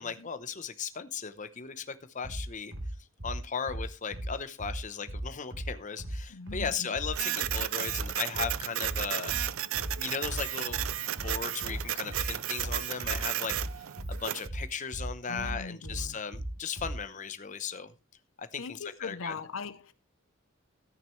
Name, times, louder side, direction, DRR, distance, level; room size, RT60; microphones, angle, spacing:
voice 1, 0.0-2.7 3.2-9.4 10.0-10.8 11.2-13.5 14.1-17.9 18.4-19.3, left 6 dB, 35° left, 0.8 m, -37 dB
sound 1, 2.2-17.0, right 1 dB, 60° right, 3.4 m, -37 dB
voice 2, 6.3-6.9 15.3-16.2 18.6-19.9, left 4 dB, 75° left, 0.7 m, -40 dB
Printer, 7.1-14.5, right 12 dB, 90° right, 0.5 m, -33 dB
14.0 x 9.4 x 3.2 m
head